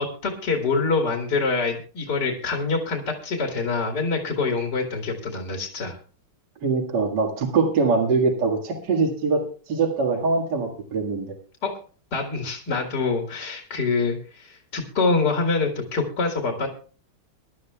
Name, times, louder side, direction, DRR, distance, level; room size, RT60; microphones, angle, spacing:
voice 1, 0.0-6.0 11.6-11.8 12.1-16.7, left 4 dB, 55° left, 2 dB, 2.3 m, -25 dB
voice 2, 6.6-11.4, right 4 dB, 55° right, 2 dB, 2.4 m, -23 dB
24.0 x 11.5 x 2.3 m, 0.38 s
omnidirectional pair, 2.3 m